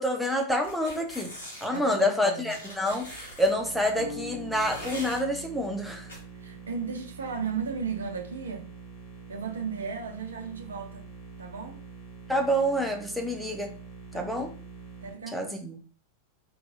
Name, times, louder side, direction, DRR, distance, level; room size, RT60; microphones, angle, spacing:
voice 1, 0.0-1.3 1.6-6.1 12.3-13.7 14.1-14.5 15.3-15.7, equal, ahead, 0.8 m, -27 dB
sound 1, 0.6-1.8 2.5-3.5 4.5-5.2 6.1-6.2, equal, 70° left, 2.1 m, -41 dB
voice 2, 1.7-2.6 6.3-8.7 9.3-11.1 11.4-11.8 14.1-14.5 15.0-15.6, right 6 dB, 70° right, 0.7 m, -35 dB
sound 2, 3.6-15.1, right 4 dB, 40° left, 1.8 m, -45 dB
sound 3, 3.9-6.3, left 5 dB, 90° left, 0.9 m, -44 dB
4.4 x 3.9 x 2.4 m
figure-of-eight pair, 90°, 0 cm